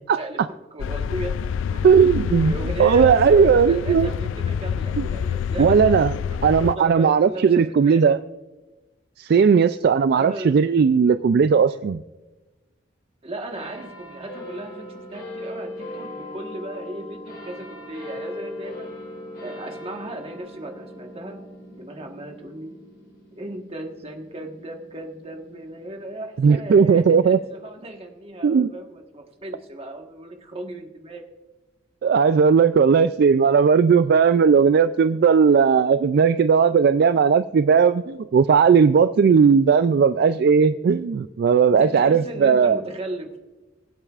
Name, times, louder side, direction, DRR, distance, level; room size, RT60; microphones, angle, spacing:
voice 1, 0.1-1.3 1.7-1.8 2.3-8.1 10.1-10.6 13.2-18.9 19.4-21.4 21.7-22.8 23.4-31.2 41.7-43.4, right 1 dB, 30° right, 3 dB, 1.4 m, -36 dB
sound 1, 0.8-6.7, left 7 dB, 75° left, 0.3 m, -27 dB
voice 2, 1.8-2.5 2.8-4.1 5.0-5.1 5.6-6.2 6.4-8.2 9.2-12.0 26.4-27.4 28.4-28.7 32.0-42.8, right 6 dB, 55° right, 12 dB, 0.3 m, -17 dB
sound 2, 13.5-26.4 27.0-27.1, left 1 dB, 55° left, 4.2 m, -39 dB
23.5 x 8.7 x 2.4 m, 1.1 s
head